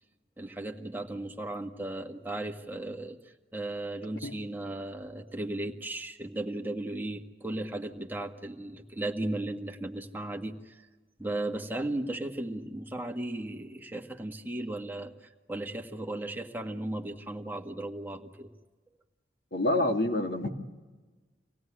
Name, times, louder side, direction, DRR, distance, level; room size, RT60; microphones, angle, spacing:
voice 1, 0.4-3.2 3.5-10.8 11.2-15.1 15.5-18.5, right 1 dB, 10° right, 2 dB, 1.7 m, -36 dB
voice 2, 19.5-20.5, left 1 dB, 60° left, 2 dB, 2.4 m, -27 dB
26.5 x 17.5 x 10.0 m, 1.3 s
head